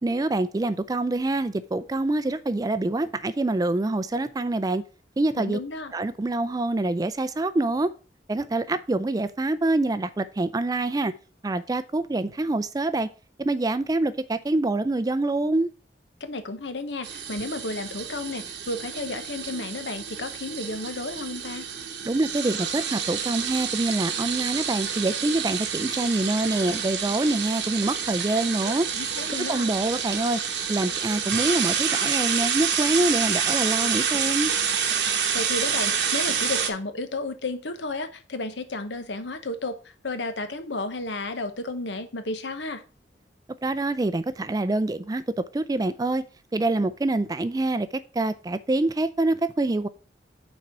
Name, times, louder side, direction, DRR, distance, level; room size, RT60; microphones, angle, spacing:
voice 1, 0.0-4.8 5.2-5.6 5.9-7.9 8.3-11.1 11.4-13.1 13.4-15.7 22.1-28.9 29.3-30.4 30.7-34.5 43.6-45.2 45.5-46.2 46.5-47.9 48.1-49.9, right 2 dB, 20° right, 0.4 m, -25 dB
voice 2, 5.4-5.9 16.2-21.7 28.9-29.7 35.3-39.8 40.0-42.8, left 2 dB, 80° left, 1.0 m, -32 dB
sound 1, 17.0-36.7, right 7 dB, 80° right, 1.0 m, -28 dB
5.9 x 4.4 x 5.9 m
head